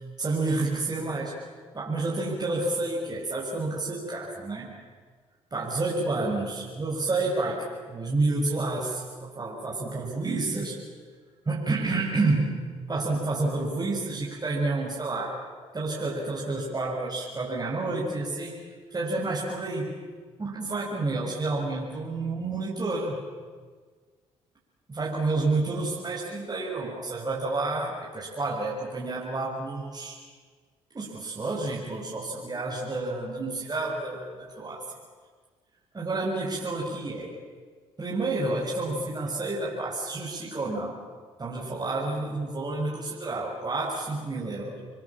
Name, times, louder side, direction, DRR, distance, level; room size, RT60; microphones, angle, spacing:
voice 1, 0.0-1.3 1.7-4.7 5.5-10.8 11.5-12.6 12.9-15.4 15.7-18.6 18.9-19.9 20.4-23.2 24.9-30.2 30.9-34.8 35.9-37.3 38.0-41.0 41.4-44.8, right 2 dB, 30° right, -4 dB, 6.9 m, -29 dB
29.5 x 22.0 x 7.6 m, 1.5 s
supercardioid pair, 60°, 13 cm